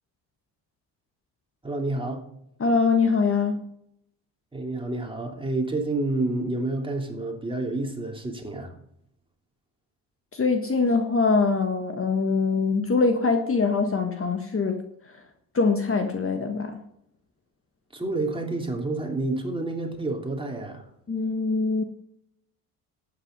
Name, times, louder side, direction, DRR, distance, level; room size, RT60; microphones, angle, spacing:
voice 1, 1.6-2.2 4.5-8.7 17.9-20.9, right 2 dB, 10° right, 1 dB, 3.1 m, -29 dB
voice 2, 2.6-3.6 10.3-15.2 15.5-16.8 21.1-21.8, left 4 dB, 30° left, 6 dB, 1.5 m, -23 dB
11.5 x 9.3 x 5.4 m, 0.74 s
supercardioid pair, 75°, 42 cm